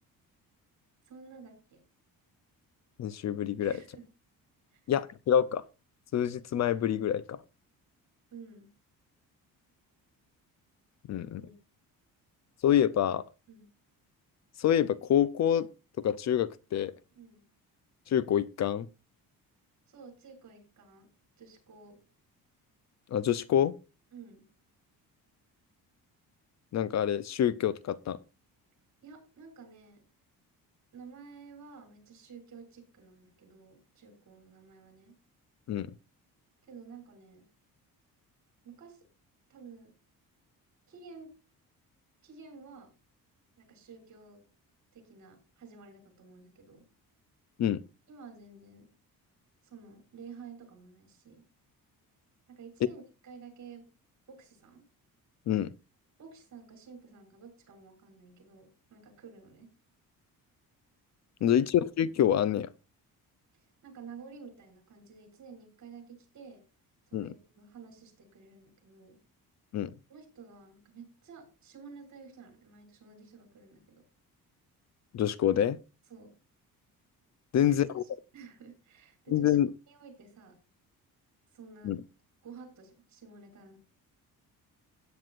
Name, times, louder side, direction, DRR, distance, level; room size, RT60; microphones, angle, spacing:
voice 1, 1.1-1.8 3.6-4.0 4.7-4.8 8.3-8.7 11.4-11.5 13.5-13.7 17.1-17.5 19.9-21.1 21.4-22.0 24.1-24.5 29.0-30.0 30.9-35.1 36.6-37.5 38.6-39.1 39.5-39.9 40.9-41.3 42.2-42.9 43.6-44.4 44.9-46.9 48.1-48.9 49.6-51.4 52.5-53.8 54.3-54.8 56.2-59.7 61.5-61.6 63.5-66.6 67.1-69.2 70.1-74.0 76.1-76.3 77.5-77.8 78.0-79.6 79.9-80.6 81.5-82.0 82.4-83.8, right 5 dB, 55° right, 6.3 m, -51 dB
voice 2, 3.0-3.8 4.9-5.6 6.1-7.4 11.1-11.4 12.6-13.2 14.6-15.7 16.0-16.9 18.1-18.9 23.1-23.8 26.7-28.2 35.7-35.9 47.6-47.8 55.5-55.7 61.4-62.7 67.1-67.3 69.7-69.9 75.1-75.8 77.5-78.0 79.3-79.7 81.8-82.0, left 10 dB, 50° left, 0.6 m, -27 dB
16.5 x 9.5 x 2.5 m
cardioid pair, 145°, 35 cm